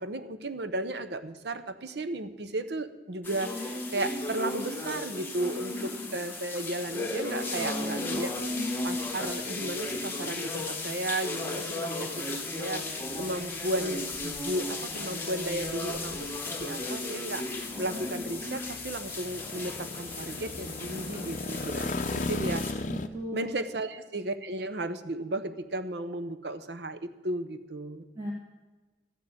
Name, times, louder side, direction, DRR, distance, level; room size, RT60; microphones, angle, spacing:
voice 1, 0.0-8.3 8.8-22.6 23.3-28.0, right 1 dB, 65° right, 11 dB, 0.8 m, -34 dB
sound 1, 3.2-22.7, left 2 dB, 10° left, 1.3 m, -35 dB
sound 2, 7.0-23.1, left 2 dB, 45° left, 0.6 m, -40 dB
voice 2, 7.3-8.2 22.9-23.5 28.2-28.3, equal, 25° right, -4 dB, 1.8 m, -36 dB
14.0 x 6.6 x 8.4 m, 1.2 s
head